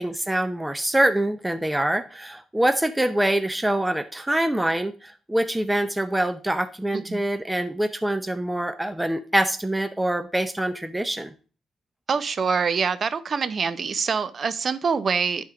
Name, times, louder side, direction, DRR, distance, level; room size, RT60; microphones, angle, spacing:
voice 1, 0.0-11.3, right 1 dB, 5° right, 0.6 m, -25 dB
voice 2, 12.1-15.4, right 5 dB, 45° right, 0.6 m, -25 dB
10.5 x 3.6 x 4.9 m
cardioid pair, 90°, 0 cm